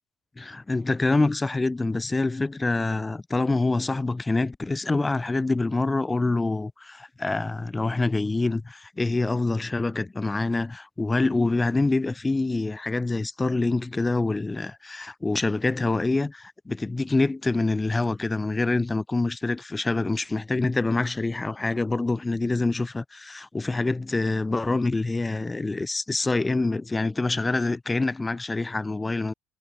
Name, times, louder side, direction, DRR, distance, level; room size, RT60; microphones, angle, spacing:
voice 1, 0.4-29.3, left 3 dB, 15° left, 4.3 m, -26 dB
cardioid pair, 95°, 0 cm